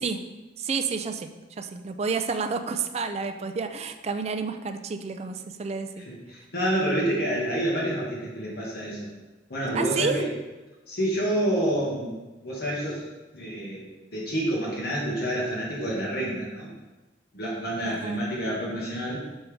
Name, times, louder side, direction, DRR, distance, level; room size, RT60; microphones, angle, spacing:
voice 1, 0.6-1.3 1.6-5.9 9.7-10.2 17.9-18.2, right 5 dB, 35° right, 7 dB, 0.4 m, -30 dB
voice 2, 6.1-9.1 9.5-10.2 10.9-12.2 12.4-13.0 13.3-13.8 14.1-16.7 17.3-19.2, right 1 dB, 60° left, -5 dB, 1.6 m, -28 dB
5.7 x 5.3 x 3.5 m, 1.1 s
head